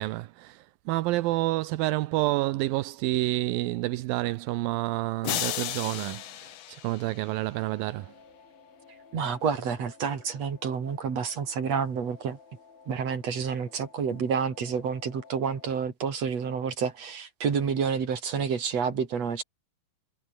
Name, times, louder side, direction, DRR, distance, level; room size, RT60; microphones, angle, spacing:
voice 1, 0.0-8.1, right 18 dB, 75° right, 2.3 m, -29 dB
sound 1, 5.2-7.6, left 12 dB, 85° left, 1.4 m, -34 dB
sound 2, 7.3-15.7, left 5 dB, 65° left, 7.4 m, -54 dB
voice 2, 9.1-12.4 12.9-19.4, right 6 dB, 45° right, 3.8 m, -29 dB
omnidirectional pair, 4.5 m